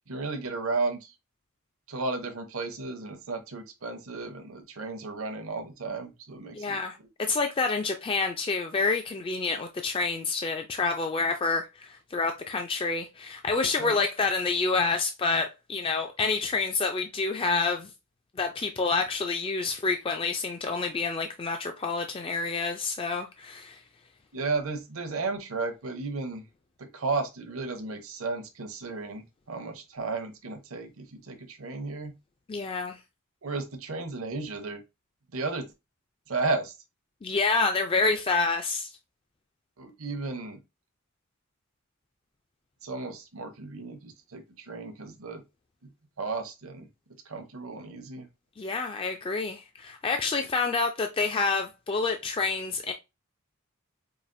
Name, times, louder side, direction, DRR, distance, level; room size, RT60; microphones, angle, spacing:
voice 1, 0.1-1.1 1.9-6.8 13.8-13.9 24.3-26.4 26.8-32.1 33.4-34.8 35.3-35.7 36.3-36.7 39.8-40.6 42.8-45.4 46.2-46.9 47.3-48.3, right 3 dB, 70° right, 0.8 m, -34 dB
voice 2, 6.5-17.9 18.4-23.8 32.5-33.0 37.2-38.9 48.6-52.9, left 4 dB, 25° left, 0.3 m, -28 dB
4.8 x 2.4 x 2.6 m
head